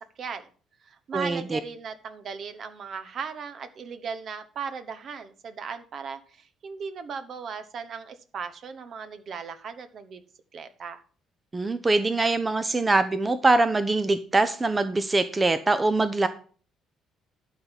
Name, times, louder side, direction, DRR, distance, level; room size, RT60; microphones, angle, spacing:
voice 1, 0.2-0.5 0.9-10.2 10.5-11.0, right 6 dB, 50° right, 11 dB, 0.9 m, -37 dB
voice 2, 1.1-1.6 11.5-16.3, right 2 dB, 25° right, 12 dB, 0.7 m, -23 dB
12.0 x 4.1 x 7.3 m, 0.42 s
figure-of-eight pair, 50°, 0 cm